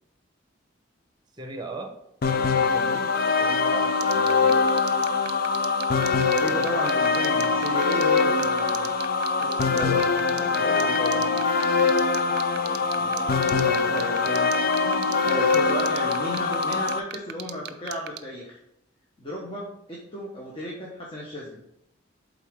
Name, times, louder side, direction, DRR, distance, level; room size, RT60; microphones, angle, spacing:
voice 1, 1.4-2.0 2.2-4.7 10.3-11.3 11.7-13.4, right 2 dB, 20° right, 4 dB, 0.9 m, -41 dB
sound 1, 2.2-17.0, left 4 dB, 50° left, 0.4 m, -23 dB
sound 2, 4.0-18.2, right 12 dB, 55° right, 0.4 m, -35 dB
voice 2, 6.3-8.9 9.4-10.0 10.3-11.4 13.0-13.2 13.5-14.5 14.8-18.6 19.2-21.6, left 1 dB, 25° left, -4 dB, 1.0 m, -34 dB
8.2 x 3.8 x 3.5 m, 0.81 s
head